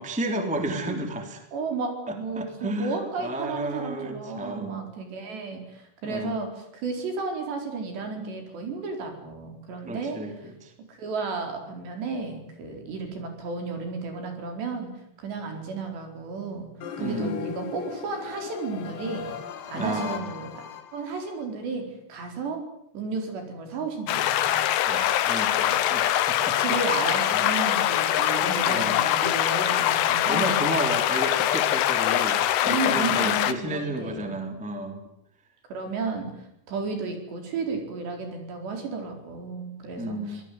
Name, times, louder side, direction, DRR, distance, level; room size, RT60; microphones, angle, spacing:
voice 1, 0.0-1.4 2.1-4.8 6.0-6.4 9.8-10.7 17.0-17.4 19.7-20.2 24.8-26.6 27.3-27.4 28.7-29.0 30.2-35.0 40.0-40.4, right 1 dB, ahead, 5 dB, 2.3 m, -32 dB
voice 2, 1.5-10.2 10.9-14.9 15.2-16.7 17.0-19.3 19.7-20.6 20.9-22.6 22.9-24.6 25.7-25.9 26.3-30.6 32.6-34.5 35.7-36.3 36.7-40.4, right 4 dB, 60° right, 4 dB, 6.5 m, -33 dB
sound 1, 16.8-21.4, left 7 dB, 55° left, 2.9 m, -38 dB
sound 2, 24.1-33.5, left 12 dB, 80° left, 3.7 m, -23 dB
25.0 x 19.0 x 9.6 m, 0.76 s
omnidirectional pair, 5.8 m